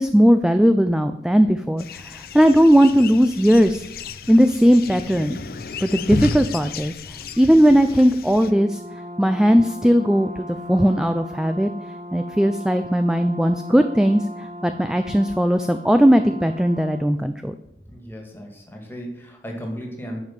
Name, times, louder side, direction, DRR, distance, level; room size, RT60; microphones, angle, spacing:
voice 1, 0.0-3.8 4.3-5.4 5.8-6.9 7.4-8.8 9.2-11.7 12.1-17.5, equal, 5° right, 8 dB, 0.4 m, -18 dB
sound 1, 1.8-8.5, left 4 dB, 55° left, 0.6 m, -33 dB
Brass instrument, 8.4-17.1, equal, 35° right, 1.5 m, -37 dB
voice 2, 17.9-20.2, equal, 10° left, 1 dB, 1.9 m, -35 dB
10.5 x 5.2 x 7.4 m, 0.81 s
head